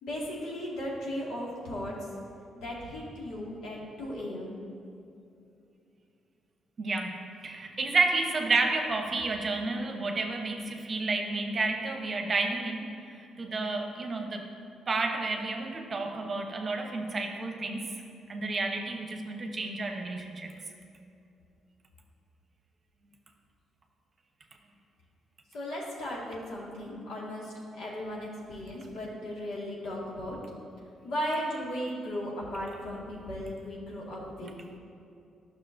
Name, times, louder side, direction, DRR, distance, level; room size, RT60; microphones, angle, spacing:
voice 1, 0.0-1.9 2.6-4.5 25.5-30.4 31.0-34.5, equal, 80° left, -5 dB, 1.8 m, -36 dB
voice 2, 6.8-12.9 13.4-14.5 14.9-17.9 18.3-20.5, right 3 dB, 40° right, 3 dB, 0.9 m, -30 dB
11.0 x 6.2 x 2.6 m, 2.6 s
cardioid pair, 90°, 0 cm